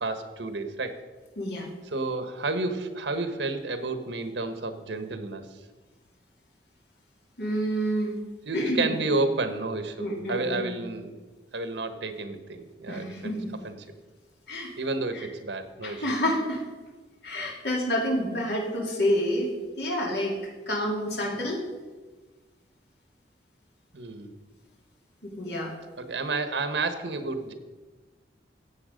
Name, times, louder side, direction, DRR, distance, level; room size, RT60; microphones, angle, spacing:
voice 1, 0.0-0.9 1.9-5.4 8.5-11.1 11.5-13.3 13.6-13.7 14.8-16.1 21.3-21.4 23.9-24.3 26.0-27.5, right 3 dB, 85° right, 9 dB, 1.3 m, -30 dB
voice 2, 1.4-1.7 7.4-8.2 8.5-8.9 10.0-10.8 12.9-13.5 14.5-14.7 15.1-15.3 15.8-16.6 17.2-19.5 19.8-20.4 20.7-21.6 25.2-25.7, equal, 65° left, -1 dB, 2.9 m, -28 dB
14.0 x 8.2 x 5.2 m, 1.3 s
head